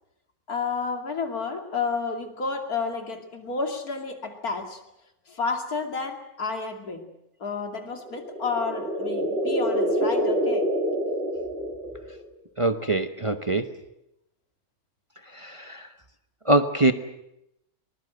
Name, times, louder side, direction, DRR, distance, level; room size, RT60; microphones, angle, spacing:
voice 1, 0.5-4.8 5.3-7.1 7.4-10.7, left 4 dB, 85° left, 5 dB, 3.1 m, -31 dB
sound 1, 8.1-12.3, equal, 40° right, 2.5 m, -26 dB
voice 2, 12.6-13.7 15.3-15.9 16.5-16.9, right 2 dB, 25° right, 8 dB, 0.9 m, -23 dB
22.5 x 21.0 x 7.9 m, 0.84 s
omnidirectional pair, 1.5 m